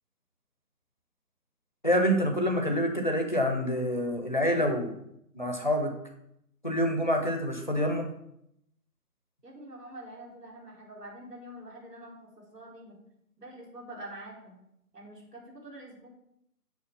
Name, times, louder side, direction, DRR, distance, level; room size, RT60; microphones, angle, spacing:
voice 1, 1.8-5.0 5.3-5.9 6.6-8.1, equal, 30° left, 4 dB, 0.9 m, -27 dB
voice 2, 9.4-13.0 13.4-14.6 14.9-16.1, right 1 dB, 80° right, -2 dB, 3.8 m, -46 dB
7.1 x 6.1 x 5.9 m, 0.77 s
figure-of-eight pair, 180°, 47 cm